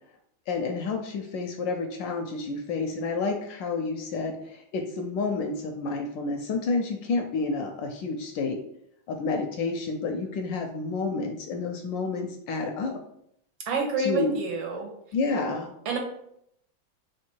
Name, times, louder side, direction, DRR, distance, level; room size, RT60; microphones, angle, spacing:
voice 1, 0.5-8.6 9.1-13.0 14.0-14.4 15.1-15.7, left 3 dB, 75° left, 4 dB, 1.1 m, -30 dB
voice 2, 13.7-14.9 15.8-16.0, right 3 dB, 70° right, 1 dB, 1.6 m, -28 dB
3.7 x 3.2 x 4.3 m, 0.73 s
omnidirectional pair, 2.3 m